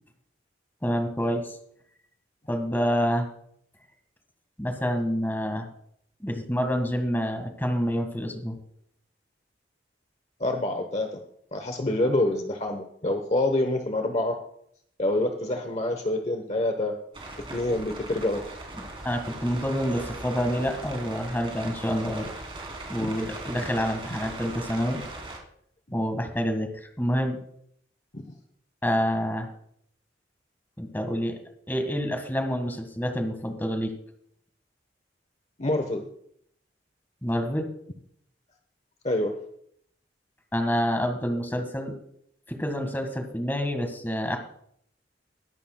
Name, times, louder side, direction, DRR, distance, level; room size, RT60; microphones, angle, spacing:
voice 1, 0.8-1.6 2.5-3.3 4.6-5.7 6.2-8.6 18.8-22.3 22.9-25.0 25.9-27.4 28.8-29.5 30.8-31.4 31.7-33.9 37.2-37.7 40.5-41.9 42.5-44.4, equal, 10° left, 5 dB, 1.7 m, -27 dB
voice 2, 10.4-11.2 11.5-14.4 15.0-16.9 17.5-18.4 23.0-23.1 28.1-28.2 35.6-36.0 39.0-39.4, left 1 dB, 35° left, 5 dB, 1.0 m, -26 dB
sound 1, 17.1-25.4, right 2 dB, 30° right, 2.9 m, -39 dB
22.0 x 11.0 x 2.3 m, 0.68 s
head